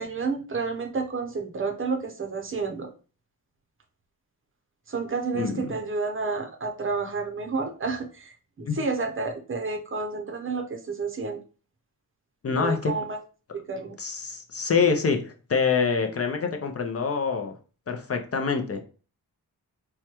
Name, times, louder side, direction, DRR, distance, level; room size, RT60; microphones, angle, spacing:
voice 1, 0.0-2.9 4.9-11.4 12.5-13.2 13.5-14.0, right 4 dB, 35° right, 3 dB, 0.6 m, -30 dB
voice 2, 5.3-5.7 8.7-8.8 12.4-12.9 14.0-17.5 17.9-18.8, left 5 dB, 40° left, 4 dB, 0.5 m, -25 dB
4.5 x 2.2 x 2.9 m, 0.37 s
wide cardioid pair, 105°, 36 cm